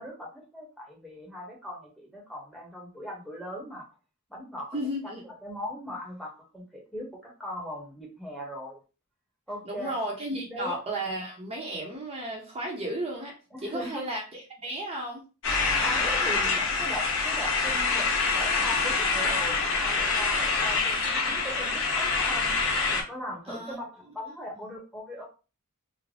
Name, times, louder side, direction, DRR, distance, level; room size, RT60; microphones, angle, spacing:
voice 1, 0.0-3.9 4.3-4.8 5.0-8.8 9.5-10.0 10.3-10.8 13.5-14.0 15.8-22.5 22.9-25.3, equal, ahead, -2 dB, 0.9 m, -39 dB
voice 2, 4.7-5.2 9.6-13.3 13.6-15.2 23.5-23.8 24.5-24.6, right 1 dB, 30° right, -1 dB, 0.7 m, -34 dB
sound 1, 15.4-23.0, left 4 dB, 65° left, 1.0 m, -26 dB
3.3 x 2.0 x 3.7 m, 0.33 s
head